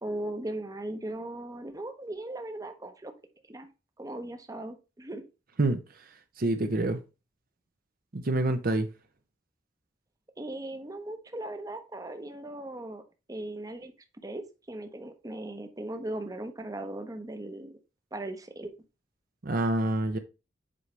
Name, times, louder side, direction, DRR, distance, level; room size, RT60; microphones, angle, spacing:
voice 1, 0.0-3.1 3.5-3.7 4.0-5.2 10.4-13.0 13.3-13.9 14.2-17.8 18.1-18.7, right 1 dB, 20° right, 0.9 m, -38 dB
voice 2, 6.4-7.0 8.1-8.9 19.4-20.2, right 2 dB, 50° right, 0.7 m, -26 dB
7.7 x 4.8 x 3.2 m
head